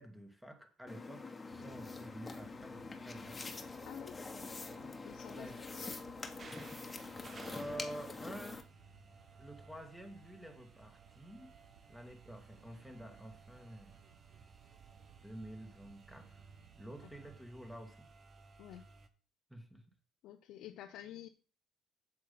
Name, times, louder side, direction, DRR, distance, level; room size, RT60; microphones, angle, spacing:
voice 1, 0.0-3.4 4.7-4.9 5.3-5.6 6.5-7.2 7.5-8.6 9.3-11.5 11.9-14.0 15.2-16.5 16.7-18.1 19.5-19.8, equal, 5° right, 5 dB, 2.3 m, -49 dB
sound 1, 0.9-8.6, left 3 dB, 25° left, 1.6 m, -45 dB
sound 2, 1.5-17.4, right 9 dB, 75° right, 1.1 m, -62 dB
voice 2, 3.8-4.2 5.0-6.0 18.6-18.8 20.2-21.3, left 12 dB, 75° left, 6 dB, 0.7 m, -50 dB
sound 3, 6.4-19.1, right 4 dB, 40° right, 1.4 m, -58 dB
7.7 x 7.3 x 5.8 m, 0.37 s
cardioid pair, 85°, 0 cm